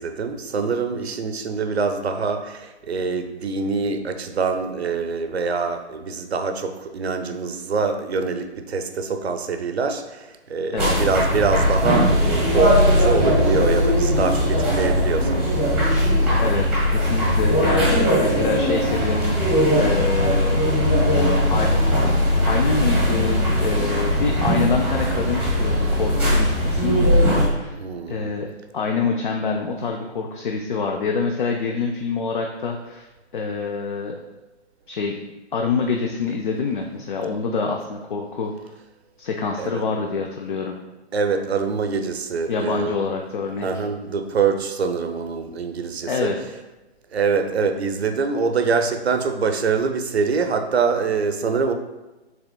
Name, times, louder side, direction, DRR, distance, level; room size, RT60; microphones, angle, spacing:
voice 1, 0.0-15.5 27.7-28.3 39.6-39.8 41.1-43.0 43.6-46.3 47.1-51.7, right 5 dB, 70° right, 7 dB, 0.6 m, -24 dB
sound 1, 10.8-27.5, equal, 5° right, 0.9 m, -19 dB
voice 2, 16.4-20.8 21.1-21.7 22.0-27.8 28.1-33.1 33.3-34.2 34.9-35.2 35.5-38.5 39.2-40.8 42.5-43.8 46.1-46.4, left 4 dB, 50° left, 2 dB, 0.5 m, -26 dB
6.8 x 3.4 x 2.2 m, 1.1 s
figure-of-eight pair, 145°, 34 cm